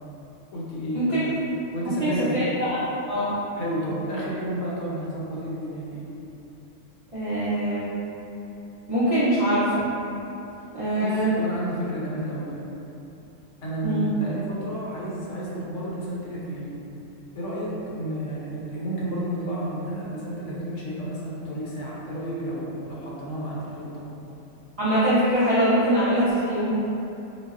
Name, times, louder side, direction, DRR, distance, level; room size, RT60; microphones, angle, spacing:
voice 1, 0.5-1.3 1.7-2.4 3.6-6.1 11.0-12.6 13.6-16.8 17.3-24.0, right 1 dB, 75° left, -6 dB, 1.0 m, -31 dB
voice 2, 2.0-2.8 3.1-3.4 7.1-7.9 8.9-9.9 10.7-11.3 13.8-14.1 24.8-26.7, right 1 dB, 50° right, -13 dB, 0.4 m, -23 dB
3.9 x 2.1 x 2.3 m, 2.9 s
omnidirectional pair, 1.3 m